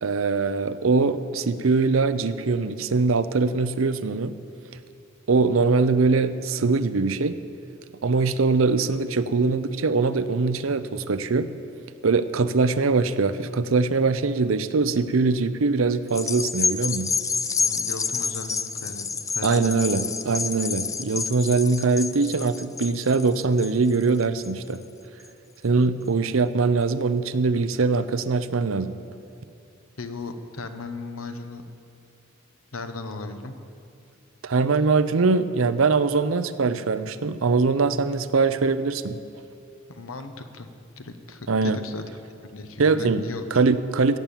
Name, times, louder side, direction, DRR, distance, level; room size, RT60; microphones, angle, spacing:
voice 1, 0.0-4.3 5.3-7.3 8.0-11.5 12.0-17.1 19.4-24.8 25.6-29.0 34.4-39.2 41.5-41.8 42.8-43.2 43.5-44.2, right 4 dB, 75° right, 12 dB, 0.6 m, -22 dB
sound 1, 16.1-24.8 25.2-25.3, left 5 dB, 15° left, 0.3 m, -29 dB
voice 2, 17.6-19.7 30.0-31.6 32.7-33.6 39.9-40.7 41.0-42.0 42.5-43.5, left 3 dB, 85° left, 8 dB, 1.0 m, -37 dB
15.0 x 7.2 x 8.9 m, 2.5 s
head